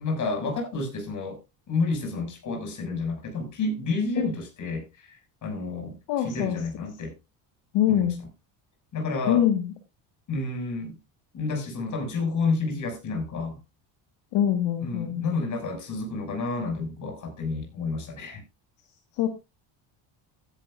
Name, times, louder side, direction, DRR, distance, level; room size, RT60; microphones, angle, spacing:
voice 1, 0.0-1.4 1.7-7.1 7.9-8.1 8.9-9.4 10.3-11.0 11.3-13.6 14.8-18.4, left 3 dB, 45° left, 6.5 m, -30 dB
voice 2, 6.1-6.6 7.7-8.2 9.3-9.7 14.3-15.2 19.1-19.3, left 11 dB, 70° left, 1.7 m, -23 dB
16.0 x 11.0 x 2.5 m
cardioid pair, 135°, 44 cm